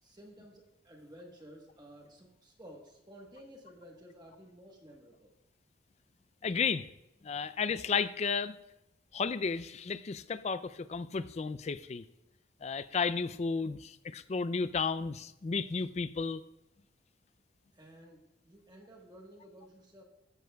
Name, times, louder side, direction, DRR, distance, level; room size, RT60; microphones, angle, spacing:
voice 1, 0.0-5.3 17.7-20.0, equal, 20° right, 0 dB, 1.2 m, -54 dB
voice 2, 6.4-6.9 7.2-8.6 9.1-12.0 12.6-16.4, left 5 dB, 35° left, 14 dB, 0.3 m, -33 dB
14.0 x 10.5 x 2.3 m, 0.89 s
head